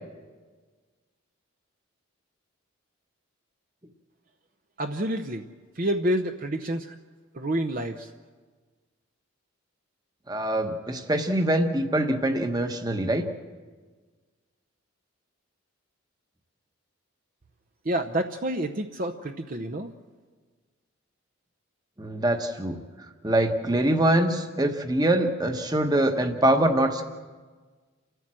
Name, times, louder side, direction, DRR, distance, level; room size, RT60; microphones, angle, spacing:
voice 1, 4.8-5.5 5.8-6.9 7.3-8.1 17.8-19.9, right 1 dB, 40° right, 7 dB, 0.7 m, -28 dB
voice 2, 10.3-13.3 22.0-22.8 23.2-27.0, right 1 dB, 20° right, 7 dB, 1.1 m, -24 dB
29.5 x 14.0 x 7.6 m, 1.4 s
head